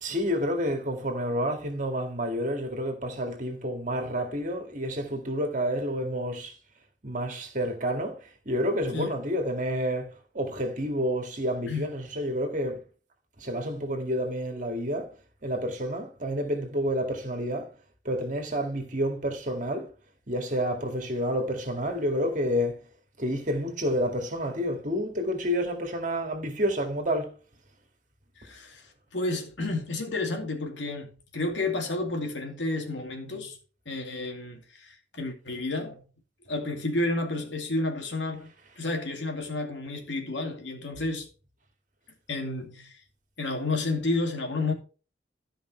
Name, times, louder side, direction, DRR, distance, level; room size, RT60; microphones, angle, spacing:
voice 1, 0.0-6.6 7.0-10.1 10.3-12.8 13.4-15.1 15.4-17.7 18.0-19.9 20.3-22.8 23.2-27.3, equal, 45° right, 2.1 m, -29 dB
voice 2, 28.4-28.8 29.1-33.6 33.9-36.0 36.5-38.5 38.8-41.3 42.3-43.0 43.4-44.7, left 2 dB, 85° left, 2.4 m, -31 dB
13.5 x 5.3 x 4.5 m
head